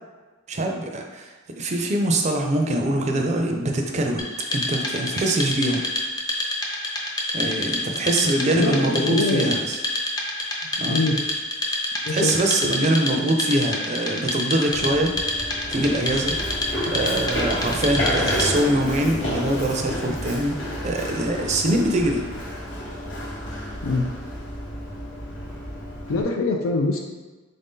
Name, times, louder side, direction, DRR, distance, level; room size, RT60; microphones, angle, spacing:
voice 1, 0.5-4.2 4.5-5.8 7.3-9.8 10.8-11.0 12.1-15.2 15.7-16.4 16.9-22.2, right 1 dB, 35° right, 2 dB, 0.4 m, -23 dB
Wood, 4.2-18.7, left 1 dB, 20° left, 0.5 m, -28 dB
voice 2, 8.5-9.6 10.9-11.2 12.0-12.3 16.8-17.1 23.8-24.0 26.1-27.0, left 3 dB, 90° left, 2 dB, 0.4 m, -23 dB
Run, 14.7-26.2, equal, 60° left, 0.9 m, -30 dB
3.7 x 2.7 x 3.6 m, 1.3 s
head